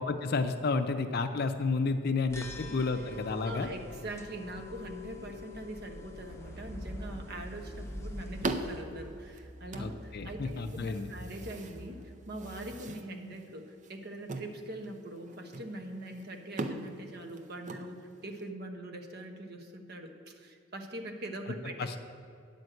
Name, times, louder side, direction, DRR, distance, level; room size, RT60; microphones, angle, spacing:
voice 1, 0.0-3.7 9.8-11.1 21.8-22.0, left 3 dB, 50° left, 8 dB, 0.5 m, -31 dB
sound 1, 2.3-8.8, left 3 dB, 15° left, 0.7 m, -46 dB
voice 2, 3.4-22.0, right 1 dB, 55° right, 4 dB, 1.0 m, -43 dB
sound 2, 6.3-9.4 9.6-12.2, equal, 5° right, 1.6 m, -45 dB
sound 3, 7.4-18.5, right 2 dB, 40° right, 0.6 m, -42 dB
9.5 x 5.2 x 7.7 m, 2.5 s
head